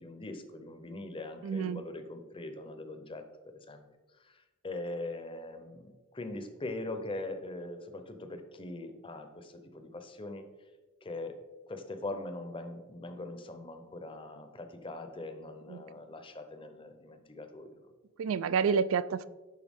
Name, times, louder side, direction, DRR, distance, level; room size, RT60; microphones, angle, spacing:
voice 1, 0.0-3.2 3.7-3.8 4.2-10.4 11.0-11.4 11.7-17.8, left 2 dB, 25° left, 7 dB, 0.7 m, -41 dB
voice 2, 1.4-1.8 15.7-15.8 18.2-19.3, right 6 dB, 65° right, 17 dB, 0.3 m, -29 dB
11.0 x 4.6 x 3.6 m, 1.2 s
head